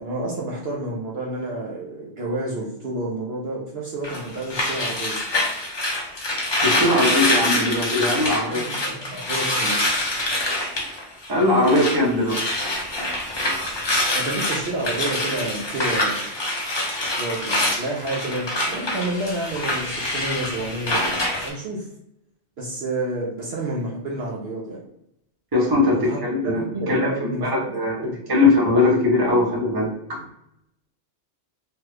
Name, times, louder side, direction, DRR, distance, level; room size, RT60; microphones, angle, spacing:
voice 1, 0.0-5.2 8.5-9.8 14.1-16.3 17.1-21.0 21.4-21.9 22.6-24.8 25.9-26.2 26.4-27.5, right 2 dB, 60° right, -3 dB, 0.8 m, -29 dB
sound 1, 4.0-12.0 12.2-21.5, left 1 dB, 35° left, 0.4 m, -25 dB
voice 2, 6.6-8.9 11.3-12.4 25.5-26.0 26.2-27.1 27.4-30.2, left 2 dB, 20° right, -3 dB, 0.8 m, -20 dB
3.0 x 2.3 x 3.2 m, 0.79 s
omnidirectional pair, 1.3 m